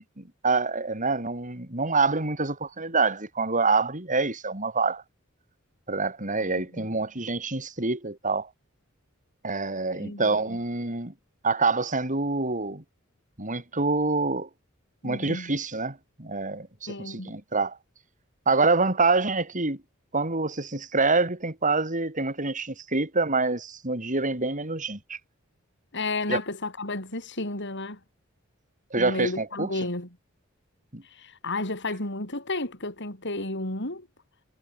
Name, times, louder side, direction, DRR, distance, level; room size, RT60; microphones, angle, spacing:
voice 1, 0.4-5.0 5.9-8.5 9.4-11.1 11.4-12.8 13.4-14.5 15.0-17.8 18.5-19.8 20.1-25.2 26.3-26.4 28.9-29.7 30.9-31.0, right 3 dB, 40° right, 6.0 m, -26 dB
voice 2, 6.5-6.9 10.0-10.6 15.0-15.5 16.9-17.3 25.9-28.0 29.0-30.1 31.0-34.1, left 2 dB, 60° left, 7.9 m, -32 dB
head